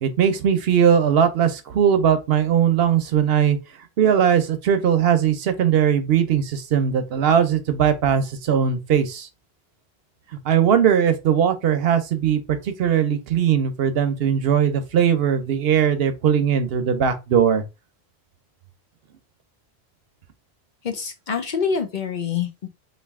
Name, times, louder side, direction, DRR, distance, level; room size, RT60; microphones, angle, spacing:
voice 1, 0.0-3.6 4.0-9.3 10.4-17.6, right 8 dB, 70° right, 0.8 m, -19 dB
voice 2, 20.8-22.7, left 6 dB, 55° left, 0.7 m, -26 dB
3.2 x 2.5 x 3.5 m
omnidirectional pair, 1.1 m